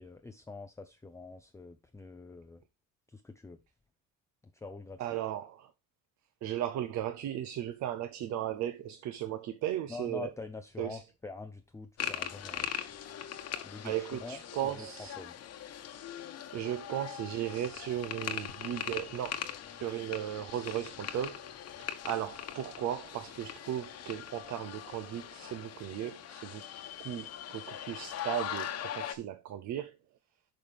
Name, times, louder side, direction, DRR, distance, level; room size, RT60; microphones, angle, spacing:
voice 1, 0.0-2.6 3.1-3.6 4.6-5.0 9.9-12.7 13.6-14.9 15.2-15.3, left 3 dB, 10° left, 0.5 m, -45 dB
voice 2, 5.0-5.7 6.4-10.3 10.8-11.1 13.8-15.2 16.5-21.5 21.8-26.6 27.0-30.0, right 11 dB, 55° right, 0.7 m, -36 dB
sound 1, 12.0-29.1, left 10 dB, 50° left, 1.1 m, -41 dB
8.5 x 5.9 x 3.4 m
cardioid pair, 145°, 33 cm